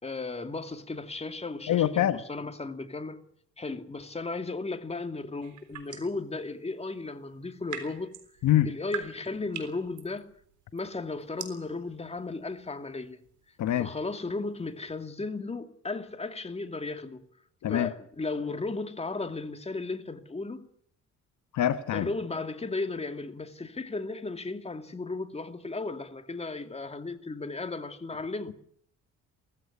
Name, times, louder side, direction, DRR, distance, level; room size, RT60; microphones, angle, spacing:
voice 1, 0.0-3.2 3.6-8.1 8.6-10.3 10.7-13.2 13.8-17.2 17.7-20.7 21.9-28.6, left 3 dB, 20° left, 2.4 m, -35 dB
voice 2, 1.7-2.2 8.4-8.7 13.6-13.9 17.6-17.9 21.5-22.1, left 12 dB, 70° left, 1.2 m, -24 dB
sound 1, 5.4-6.2 7.3-15.0, right 8 dB, 75° right, 3.8 m, -45 dB
19.0 x 15.0 x 9.7 m
cardioid pair, 90°, 30 cm